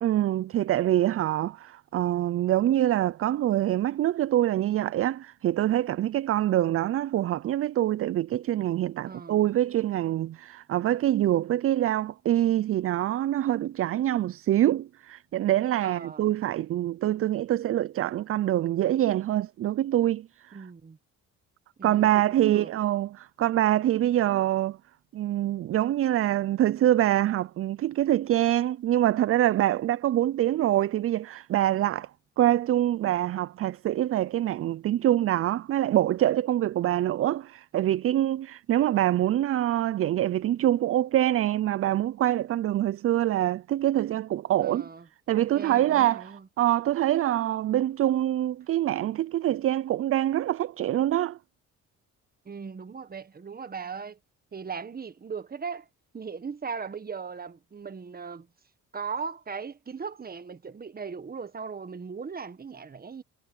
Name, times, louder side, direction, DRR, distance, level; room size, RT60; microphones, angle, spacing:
voice 1, 0.0-20.6 21.8-24.8 25.1-32.1 32.4-44.9 45.3-51.4, right 13 dB, 50° right, 0.4 m, -25 dB
voice 2, 9.1-9.5 15.8-16.3 20.5-21.0 21.8-22.7 44.6-45.1 45.3-46.5 52.4-54.2 54.5-55.9 56.1-58.5 58.9-63.2, right 5 dB, 30° right, 1.5 m, -38 dB
cardioid pair, 90°, 30 cm